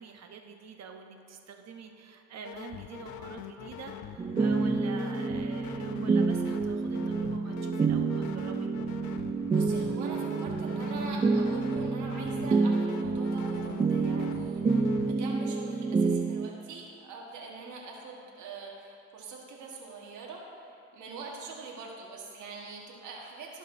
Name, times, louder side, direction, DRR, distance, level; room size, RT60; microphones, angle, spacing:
voice 1, 0.0-8.7, right 5 dB, 60° right, 4 dB, 0.9 m, -46 dB
sound 1, 2.4-15.1, left 9 dB, 75° left, 0.5 m, -43 dB
sound 2, 4.2-16.5, right 4 dB, 20° right, 0.3 m, -28 dB
voice 2, 9.2-23.6, right 4 dB, 75° right, -2 dB, 1.4 m, -43 dB
16.0 x 5.4 x 2.6 m, 2.6 s
cardioid pair, 90°, 30 cm